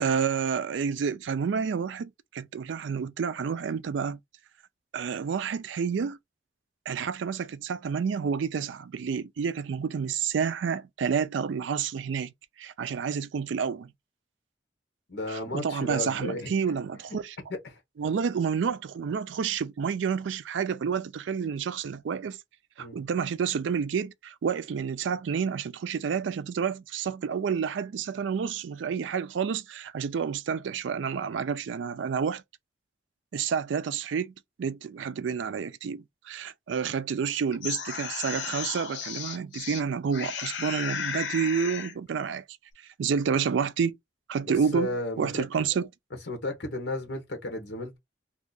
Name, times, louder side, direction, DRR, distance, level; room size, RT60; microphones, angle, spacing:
voice 1, 0.0-4.2 4.9-6.2 6.9-12.3 12.6-13.9 15.3-17.4 18.0-22.4 22.8-32.4 33.3-42.4 42.8-44.0 44.3-44.9 45.2-45.9, right 6 dB, 85° right, 0.4 m, -29 dB
voice 2, 15.1-16.5 17.5-17.8 22.8-23.0 44.5-45.4 46.3-48.0, left 2 dB, 65° left, 1.0 m, -34 dB
sound 1, 37.3-39.8 40.1-42.0, left 7 dB, 85° left, 0.7 m, -34 dB
2.7 x 2.4 x 3.7 m
head